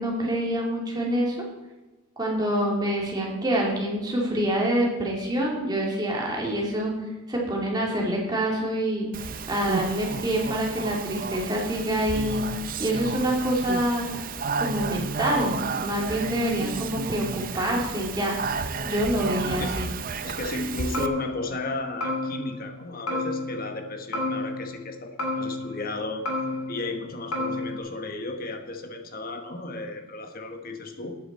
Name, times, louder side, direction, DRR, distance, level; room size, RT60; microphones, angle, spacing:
voice 1, 0.0-1.3 2.2-6.9 7.3-14.1 14.6-18.4 18.8-19.9, right 1 dB, 20° right, -2 dB, 2.7 m, -26 dB
Speech, 9.1-21.1, right 4 dB, 40° right, 0.6 m, -32 dB
voice 2, 19.4-19.8 20.2-26.2 26.7-31.2, left 2 dB, 40° left, 5 dB, 1.2 m, -34 dB
sound 1, 20.9-21.7 22.0-22.7 23.1-23.8 24.1-24.9 25.2-26.0 26.2-27.0 27.3-27.8, left 2 dB, 75° left, 2.6 m, -31 dB
14.0 x 9.2 x 4.2 m, 1.2 s
head